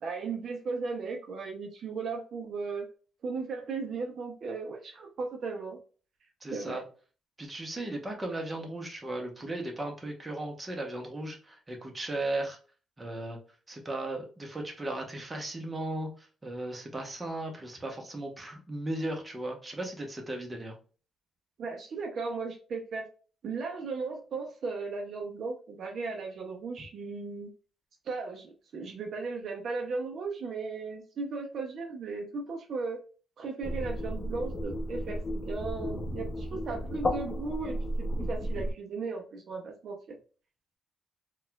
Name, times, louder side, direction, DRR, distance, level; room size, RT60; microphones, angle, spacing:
voice 1, 0.0-2.9 3.2-5.8 6.5-6.8 21.6-23.1 23.4-27.5 28.0-33.0 33.4-40.2, right 4 dB, 60° right, 2 dB, 0.6 m, -36 dB
voice 2, 6.4-6.8 7.4-12.6 13.0-13.4 13.7-20.8, right 1 dB, 20° right, 2 dB, 0.9 m, -36 dB
sound 1, 33.6-38.7, equal, 35° left, 0.6 m, -33 dB
4.1 x 2.3 x 2.2 m, 0.38 s
cardioid pair, 90°, 0 cm